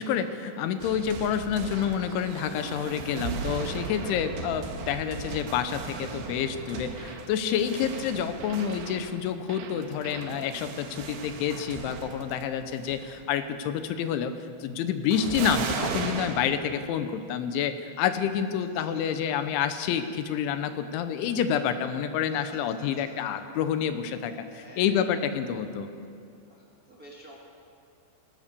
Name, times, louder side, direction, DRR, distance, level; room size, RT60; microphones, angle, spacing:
voice 1, 0.0-25.9, left 8 dB, 80° left, 9 dB, 3.3 m, -28 dB
sound 1, 0.8-12.4 12.7-13.2 15.1-16.5, right 5 dB, 80° right, 3.8 m, -37 dB
voice 2, 22.3-23.4 24.5-25.1 26.5-26.6 26.9-27.3, equal, 30° right, -4 dB, 1.8 m, -48 dB
21.0 x 18.0 x 6.8 m, 2.4 s
omnidirectional pair, 5.4 m